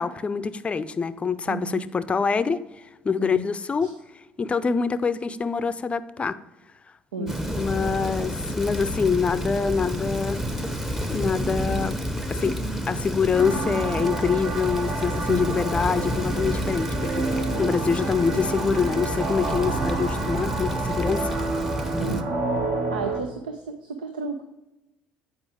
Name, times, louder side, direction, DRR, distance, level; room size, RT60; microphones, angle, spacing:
voice 1, 0.0-2.6 3.0-3.9 4.4-6.4 7.2-7.3 7.6-10.4 11.1-12.0 12.3-12.6 12.9-17.3 17.6-21.3, left 5 dB, 25° left, 13 dB, 0.5 m, -25 dB
voice 2, 1.5-1.8 3.2-3.5 3.8-3.9 7.1-7.6 15.3-15.5 22.0-22.3 22.9-24.4, right 4 dB, 85° right, 7 dB, 0.5 m, -33 dB
Rain, 7.3-22.2, equal, 10° right, 0.8 m, -29 dB
sound 1, 13.3-23.2, right 3 dB, 55° right, 1.2 m, -30 dB
8.4 x 4.7 x 4.8 m, 0.96 s
hypercardioid pair, 60°, 4 cm